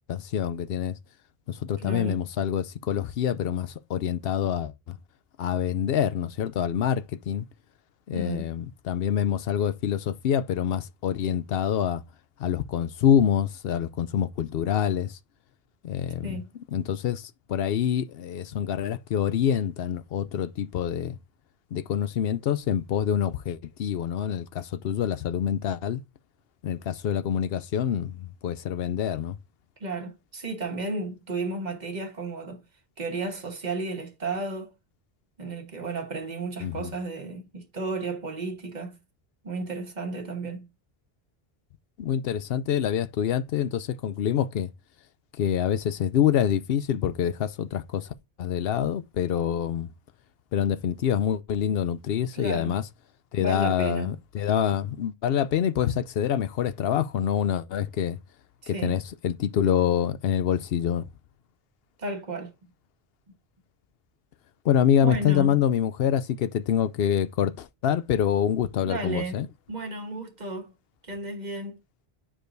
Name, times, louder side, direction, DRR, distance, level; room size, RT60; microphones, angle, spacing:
voice 1, 0.1-1.0 1.5-5.0 5.4-7.5 8.1-12.0 12.4-15.2 15.8-16.3 16.7-21.2 21.7-26.0 26.6-29.4 36.6-36.9 42.0-44.7 45.4-48.1 48.4-49.9 50.5-52.8 53.3-58.2 58.7-61.0 64.6-69.5, left 9 dB, 70° left, 0.8 m, -26 dB
voice 2, 1.8-2.2 8.1-8.5 16.2-16.5 29.8-32.6 33.0-34.7 35.4-39.0 39.4-40.6 52.3-52.8 53.4-54.1 58.6-59.0 62.0-62.5 65.0-65.6 68.8-69.4 69.7-70.7 71.0-71.8, right 3 dB, 45° right, 1.4 m, -33 dB
8.8 x 4.9 x 2.6 m
omnidirectional pair, 1.0 m